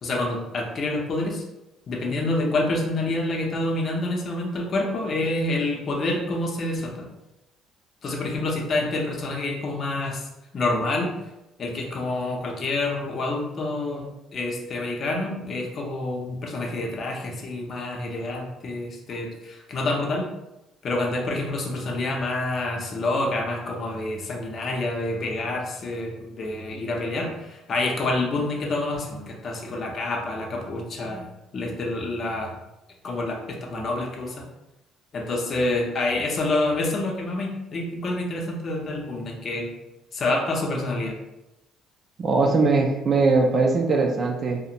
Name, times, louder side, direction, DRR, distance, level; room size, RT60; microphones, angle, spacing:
voice 1, 0.0-1.4 1.9-7.1 8.0-10.3 10.5-11.1 11.6-20.3 20.8-31.3 31.5-32.5 33.0-34.5 35.1-39.7 40.1-41.1, left 2 dB, 50° left, 0 dB, 0.6 m, -27 dB
voice 2, 42.2-44.6, right 3 dB, 45° right, 1 dB, 0.4 m, -20 dB
2.4 x 2.1 x 2.8 m, 0.94 s
cardioid pair, 85°, 0 cm